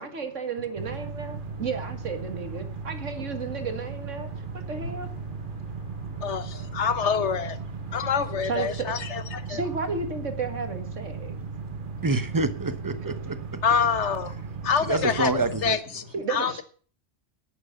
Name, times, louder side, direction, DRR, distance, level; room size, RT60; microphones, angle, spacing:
voice 1, 0.0-4.3 4.7-5.1 8.4-8.9 9.5-11.4 16.1-16.6, right 4 dB, 75° right, 7 dB, 2.2 m, -33 dB
sound 1, 0.8-15.8, right 4 dB, 50° right, 0.9 m, -36 dB
voice 2, 6.2-7.6 7.9-9.6 13.6-14.3 14.6-15.3 15.6-16.0 16.3-16.6, left 6 dB, 65° left, 13 dB, 1.4 m, -26 dB
voice 3, 12.0-13.4 14.8-15.8, right 2 dB, 20° right, 11 dB, 1.0 m, -27 dB
10.5 x 9.2 x 6.9 m, 0.42 s
omnidirectional pair, 1.3 m